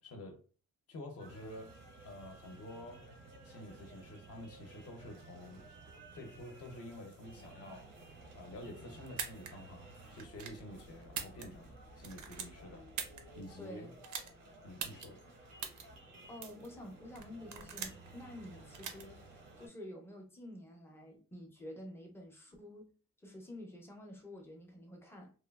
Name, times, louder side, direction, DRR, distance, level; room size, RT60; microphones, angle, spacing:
voice 1, 0.0-0.4 0.9-1.7 2.0-3.1 3.4-5.6 6.1-7.9 8.3-12.8 13.4-13.9 14.6-15.2, left 1 dB, 50° left, 0.6 m, -49 dB
sound 1, 1.2-19.7, right 2 dB, 90° right, 0.9 m, -55 dB
sound 2, 9.1-9.5 10.2-10.6 11.0-11.7 12.0-13.2 14.0-14.3 14.8-15.1 15.6-15.8 16.4-16.7 17.2-18.1 18.7-19.0, right 7 dB, 65° right, 0.6 m, -41 dB
voice 2, 13.6-14.0 16.3-22.9 23.2-25.3, left 1 dB, 10° left, 0.5 m, -49 dB
3.0 x 2.2 x 2.2 m
cardioid pair, 180°, 32 cm